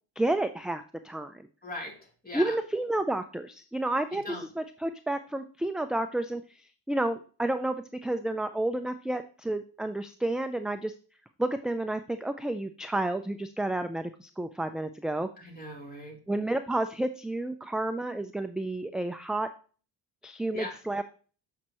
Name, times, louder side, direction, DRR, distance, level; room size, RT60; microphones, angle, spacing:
voice 1, 0.2-1.4 2.3-6.4 6.9-10.9 11.4-15.3 16.3-19.5 20.2-21.0, right 1 dB, ahead, 9 dB, 0.3 m, -30 dB
voice 2, 1.6-2.0 2.2-2.6 4.1-4.4 15.4-16.2 20.5-20.7, left 2 dB, 20° left, 0 dB, 2.9 m, -39 dB
7.4 x 5.5 x 3.0 m, 0.38 s
cardioid pair, 65°, 44 cm